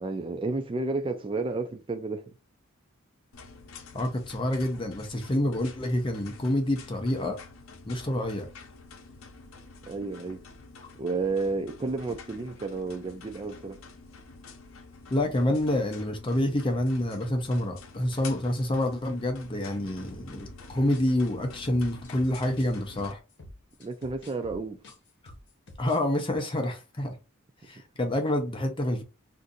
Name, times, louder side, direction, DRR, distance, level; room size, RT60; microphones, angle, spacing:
voice 1, 0.0-2.2 9.9-10.4 11.0-13.8 23.8-24.8, right 3 dB, 25° right, 0.3 m, -31 dB
sound 1, 3.3-23.1, left 4 dB, 85° left, 0.6 m, -48 dB
voice 2, 3.9-7.4 7.9-8.5 15.1-23.2 25.8-27.1 27.6-29.0, left 1 dB, 25° left, 0.6 m, -27 dB
sound 2, 20.1-22.7 23.0-26.0 26.3-26.5, left 1 dB, 60° left, 0.9 m, -49 dB
2.6 x 2.5 x 3.8 m
head